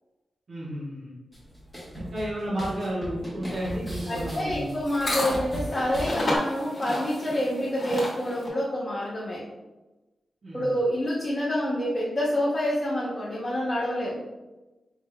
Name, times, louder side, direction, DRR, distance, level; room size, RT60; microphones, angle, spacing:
voice 1, 0.5-1.1 1.9-4.8 10.4-10.7, equal, 40° right, -6 dB, 0.9 m, -32 dB
sound 1, 1.3-6.4, right 1 dB, 5° right, 1.2 m, -38 dB
sound 2, 3.5-8.5, left 1 dB, 40° left, 1.1 m, -32 dB
voice 2, 4.1-9.4 10.5-14.2, left 1 dB, 20° left, -5 dB, 0.6 m, -27 dB
4.8 x 3.5 x 2.2 m, 1.1 s
wide cardioid pair, 180°, 0 cm